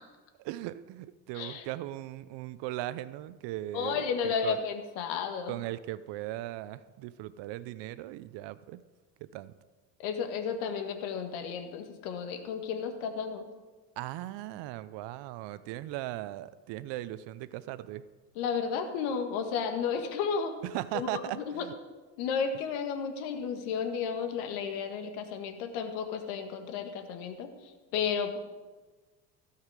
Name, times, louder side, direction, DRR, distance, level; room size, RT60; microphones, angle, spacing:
voice 1, 0.4-4.6 5.5-8.8 9.3-9.5 14.0-18.0 20.6-21.7, right 15 dB, 60° right, 16 dB, 0.7 m, -38 dB
voice 2, 3.7-5.5 10.0-13.5 18.3-20.5 20.9-21.7 22.2-28.4, left 6 dB, 70° left, 6 dB, 1.6 m, -33 dB
16.5 x 5.7 x 4.9 m, 1.3 s
hypercardioid pair, 70°, 50 cm